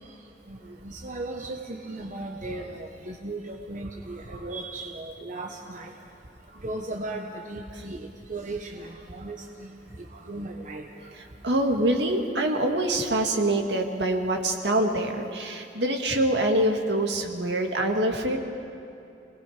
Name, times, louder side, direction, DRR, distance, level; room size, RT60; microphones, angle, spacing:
voice 1, 0.8-5.9 6.6-8.0 8.3-9.4 10.3-10.8, right 2 dB, 45° right, 0 dB, 1.2 m, -36 dB
voice 2, 11.1-18.4, right 1 dB, 70° right, 3 dB, 2.0 m, -25 dB
29.0 x 20.0 x 5.1 m, 2.7 s
head